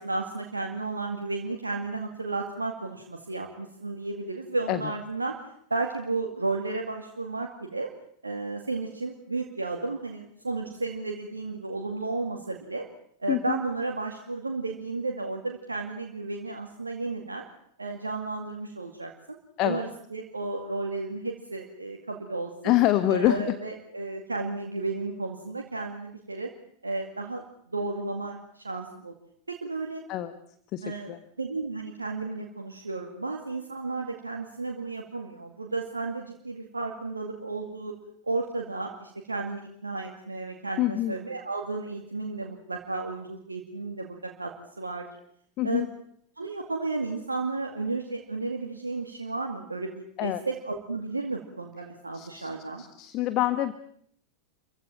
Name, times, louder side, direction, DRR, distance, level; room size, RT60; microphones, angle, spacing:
voice 1, 0.0-5.4 5.7-7.9 8.2-12.9 13.2-17.5 17.8-19.4 19.6-22.7 23.1-26.5 26.8-27.4 27.7-29.1 29.5-30.0 30.8-37.9 38.2-45.1 45.6-45.9 46.4-52.8, right 3 dB, 80° right, 2 dB, 2.3 m, -33 dB
voice 2, 13.3-13.6 19.6-19.8 22.6-23.5 30.1-30.3 30.7-31.2 40.8-41.1 45.6-45.9 50.2-50.4 52.1-52.5 52.8-53.7, left 14 dB, 40° left, 12 dB, 1.3 m, -26 dB
28.0 x 15.5 x 9.0 m, 0.67 s
figure-of-eight pair, 90°, 0 cm